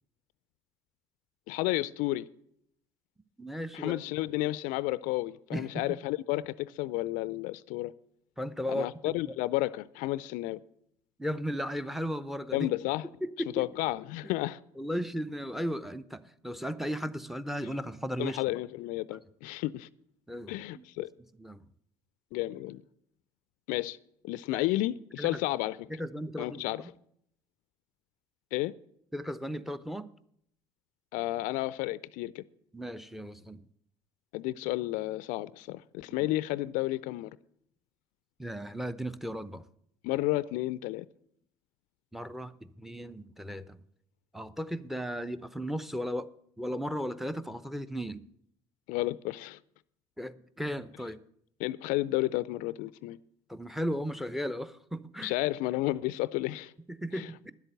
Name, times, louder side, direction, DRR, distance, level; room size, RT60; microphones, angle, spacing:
voice 1, 1.5-2.3 3.7-7.9 8.7-10.6 12.5-13.1 13.6-14.6 18.2-19.9 20.5-21.1 22.3-22.8 23.7-24.0 24.2-25.9 26.4-26.8 28.5-28.7 31.1-32.4 34.3-37.3 40.0-41.1 48.9-49.6 51.6-53.2 55.2-56.7 57.1-57.5, left 17 dB, 65° left, 0.4 m, -32 dB
voice 2, 3.4-4.0 5.5-5.8 8.4-9.3 11.2-12.7 13.2-13.7 14.8-18.6 20.3-20.8 21.4-21.6 24.5-24.6 25.2-25.4 25.9-26.7 29.1-30.1 32.7-33.6 36.2-36.3 38.4-39.7 42.1-43.8 44.3-46.3 46.6-48.2 50.2-51.2 53.5-55.3 56.9-57.5, equal, ahead, 0.7 m, -36 dB
10.5 x 8.1 x 7.8 m
hypercardioid pair, 65°, 15 cm